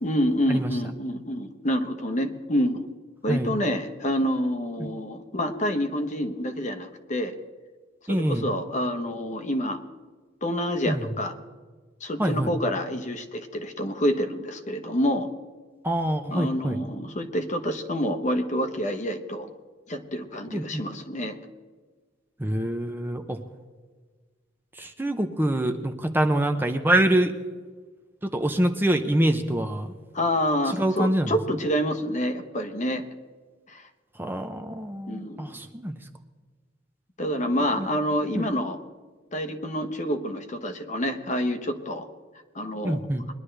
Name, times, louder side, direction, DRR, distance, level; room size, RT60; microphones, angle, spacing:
voice 1, 0.0-2.9 3.2-7.3 8.1-9.8 10.4-11.3 12.0-15.3 16.3-19.5 19.9-21.4 30.1-33.0 33.7-33.8 35.1-35.5 37.2-38.8 39.3-42.1 42.5-43.0, equal, 40° left, 7 dB, 1.0 m, -27 dB
voice 2, 8.1-8.5 10.9-11.1 12.2-12.5 15.8-16.8 20.5-20.8 22.4-23.4 24.7-27.3 28.2-29.9 30.7-31.3 34.2-36.1 37.8-37.9 38.4-38.5 42.8-43.2, right 1 dB, 10° right, 6 dB, 0.7 m, -25 dB
21.5 x 11.5 x 3.3 m, 1.4 s
head